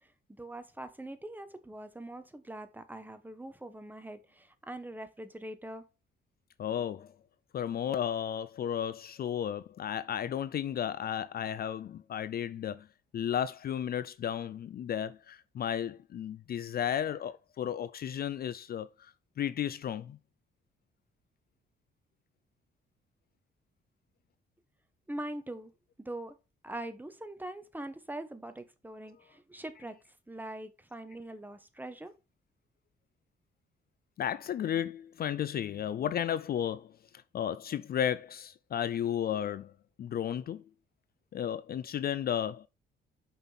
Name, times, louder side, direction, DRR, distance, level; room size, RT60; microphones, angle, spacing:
voice 1, 0.4-5.8 25.1-25.7 26.0-26.4 26.6-29.9 30.3-32.1, right 1 dB, 10° right, 1.2 m, -42 dB
voice 2, 6.6-7.1 7.5-12.9 13.1-20.2 34.2-36.9 37.3-39.7 40.0-40.6 41.3-42.7, left 9 dB, 50° left, 0.4 m, -33 dB
6.0 x 5.4 x 5.6 m
cardioid pair, 90°, 20 cm